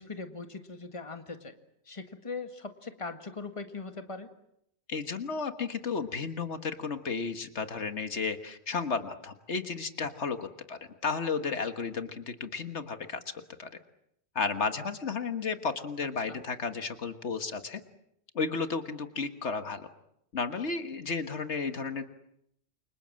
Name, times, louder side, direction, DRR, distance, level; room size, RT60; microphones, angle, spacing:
voice 1, 0.0-1.5 1.9-4.3 16.3-16.4, left 4 dB, 25° left, 7 dB, 1.9 m, -40 dB
voice 2, 4.9-13.2 13.6-13.7 14.4-17.8 18.4-19.9 20.3-22.0, left 5 dB, 75° left, 8 dB, 1.8 m, -33 dB
29.0 x 25.5 x 7.6 m, 0.76 s
omnidirectional pair, 1.2 m